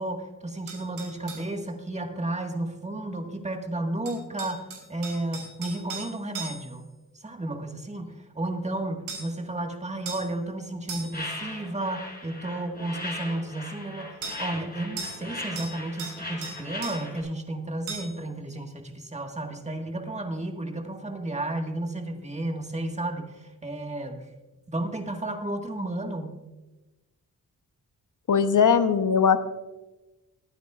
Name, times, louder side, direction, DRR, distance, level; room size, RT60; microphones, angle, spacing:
voice 1, 0.0-6.8 7.1-24.2 24.7-26.4, right 1 dB, 20° right, 3 dB, 1.8 m, -32 dB
sound 1, 0.7-1.5 4.1-6.8 9.1-9.4 10.1-10.3 10.9-11.3 14.2-14.4 15.0-15.3 15.6-16.2 16.4-17.0 17.9-18.2, right 4 dB, 80° right, 4.0 m, -38 dB
sound 2, 11.1-17.2, left 2 dB, 25° left, 4.8 m, -38 dB
voice 2, 28.3-29.4, left 6 dB, 55° left, 10 dB, 1.0 m, -20 dB
21.5 x 9.3 x 2.5 m, 1.1 s
cardioid pair, 65°, 36 cm